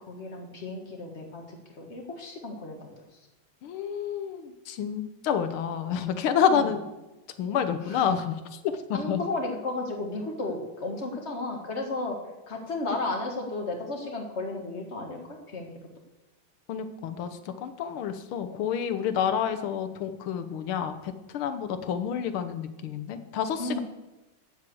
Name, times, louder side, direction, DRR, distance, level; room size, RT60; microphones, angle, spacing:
voice 1, 0.0-2.9 6.5-6.7 7.9-8.1 8.9-12.2 12.5-15.7 23.6-23.8, left 2 dB, 35° left, 2 dB, 1.8 m, -34 dB
voice 2, 3.6-6.8 7.4-8.6 8.9-9.2 16.7-23.8, left 8 dB, 90° left, 8 dB, 1.8 m, -29 dB
8.9 x 7.6 x 7.8 m, 1.0 s
omnidirectional pair, 2.3 m